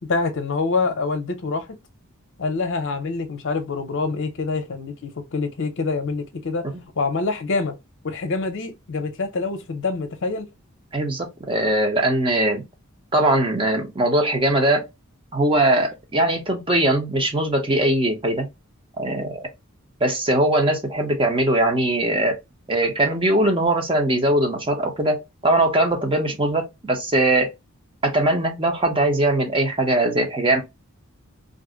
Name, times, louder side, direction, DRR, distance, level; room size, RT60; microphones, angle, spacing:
voice 1, 0.0-1.7 2.4-6.7 7.0-7.8 8.0-10.5, left 3 dB, 60° left, 0.7 m, -26 dB
voice 2, 10.9-12.6 13.1-14.9 15.3-18.5 19.0-19.5 20.0-22.4 22.7-27.5 28.0-30.6, right 1 dB, 25° right, 0.7 m, -21 dB
2.5 x 2.1 x 3.7 m
head